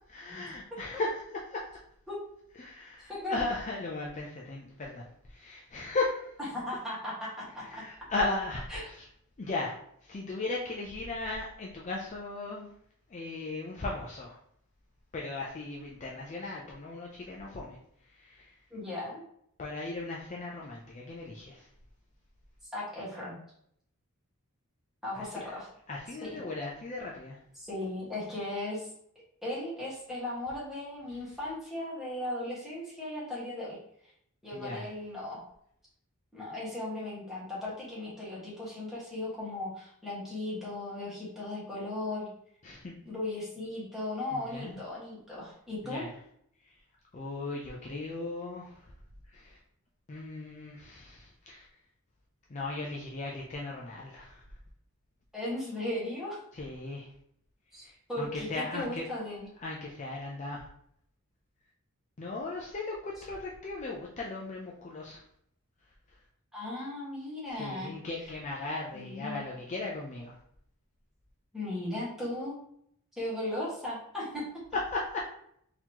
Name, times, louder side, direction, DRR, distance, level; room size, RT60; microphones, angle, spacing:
voice 1, 0.1-1.7 2.6-6.3 7.6-9.1 9.4-12.7 13.1-14.4 15.1-17.8 18.1-18.6 19.6-21.7 25.1-25.6 25.9-27.4 34.5-34.9 42.6-42.9 44.3-44.8 45.8-46.2 46.6-46.8 47.1-48.9 49.3-49.6 50.1-51.7 52.5-54.4 56.5-57.1 57.8-59.1 59.6-60.7 62.2-65.2 66.1-66.2 67.5-70.4 74.7-75.2, left 2 dB, 35° left, -2 dB, 0.5 m, -37 dB
voice 2, 3.1-3.4 6.5-7.8 8.7-8.8 18.7-19.2 22.7-23.3 25.0-25.7 26.2-26.4 27.5-28.9 29.4-33.8 34.4-35.4 36.3-42.3 43.0-46.0 55.3-56.4 57.7-59.5 66.5-67.9 68.9-69.5 71.5-72.6 73.1-74.4, left 1 dB, ahead, -8 dB, 1.5 m, -37 dB
4.0 x 2.9 x 2.9 m, 0.69 s
head